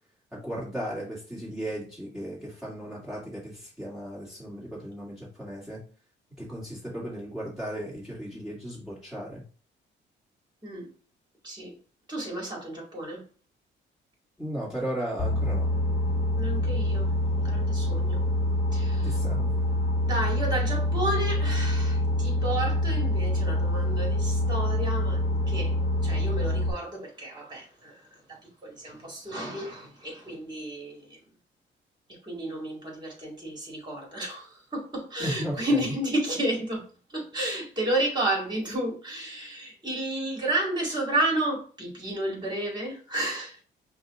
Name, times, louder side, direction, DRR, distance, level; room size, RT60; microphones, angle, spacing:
voice 1, 0.3-5.8 6.4-9.4 14.4-15.7 19.0-19.5 35.2-35.8, equal, ahead, 2.1 m, -36 dB
voice 2, 12.1-13.2 16.4-18.2 18.7-19.2 20.0-25.7 26.0-27.9 28.3-31.2 32.2-36.8 37.1-43.6, right 1 dB, 20° right, 2.1 m, -31 dB
Boat Water vehicle, 15.2-26.7, left 1 dB, 35° left, 1.3 m, -26 dB
5.3 x 2.4 x 3.7 m
cardioid pair, 90°, 20 cm